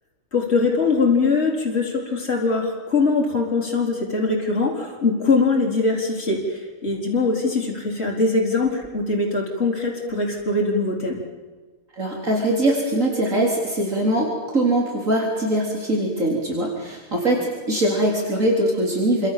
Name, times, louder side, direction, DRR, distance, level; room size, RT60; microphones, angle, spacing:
voice 1, 0.3-11.2, left 3 dB, 45° left, -2 dB, 4.6 m, -22 dB
voice 2, 11.9-14.3 14.5-19.3, right 1 dB, 65° right, -1 dB, 4.3 m, -22 dB
28.5 x 26.0 x 7.6 m, 1.4 s
omnidirectional pair, 1.5 m